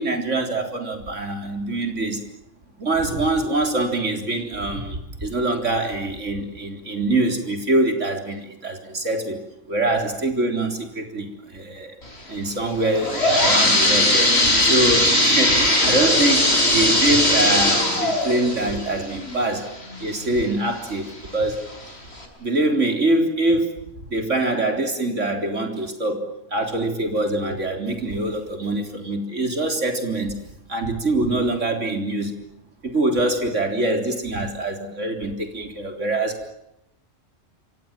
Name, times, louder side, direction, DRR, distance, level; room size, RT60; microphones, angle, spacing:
voice 1, 0.0-2.2 2.8-9.4 9.7-11.9 12.3-14.3 14.6-19.7 20.0-21.7 22.4-23.8 24.1-30.4 30.7-32.4 32.8-36.5, right 2 dB, 75° right, 5 dB, 4.1 m, -24 dB
sound 1, 12.8-20.4 20.9-21.0 21.7-21.8 22.2-22.3, left 1 dB, 55° left, 6.0 m, -19 dB
28.0 x 26.0 x 7.4 m, 0.82 s
omnidirectional pair, 1.3 m